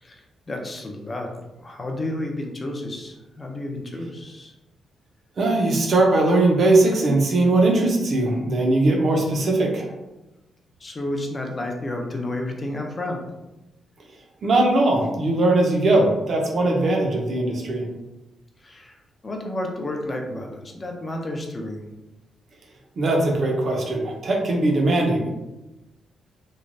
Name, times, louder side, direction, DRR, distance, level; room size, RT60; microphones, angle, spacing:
voice 1, 0.0-4.5 10.8-13.2 18.6-19.0 19.2-21.8, left 1 dB, 20° left, 1 dB, 0.4 m, -31 dB
voice 2, 5.4-9.9 14.4-17.9 23.0-25.3, right 2 dB, 40° right, 0 dB, 0.5 m, -20 dB
3.1 x 2.2 x 2.5 m, 1.0 s
wide cardioid pair, 175°, 0 cm